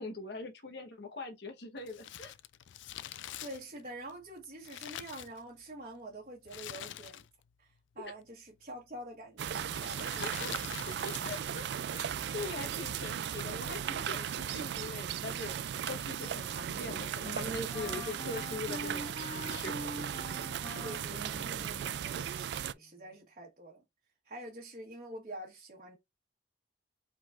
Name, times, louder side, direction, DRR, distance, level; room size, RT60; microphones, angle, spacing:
voice 1, 0.0-2.3 10.0-10.5 11.0-15.6 15.9-19.9, left 3 dB, 60° left, 1.1 m, -42 dB
Crumpling crinkling, 1.8-5.8 6.5-7.5 7.8-7.9 8.7-9.0 9.7-11.6 11.9-12.0, left 11 dB, 80° left, 0.3 m, -45 dB
voice 2, 3.4-7.2 7.6-10.3 20.8-23.8 24.2-26.0, right 1 dB, 40° right, 1.2 m, -46 dB
sound 1, 9.4-22.7, right 9 dB, 60° right, 0.3 m, -37 dB
Wind instrument woodwind instrument, 15.7-22.9, left 1 dB, 30° left, 1.4 m, -46 dB
5.0 x 3.9 x 2.4 m
head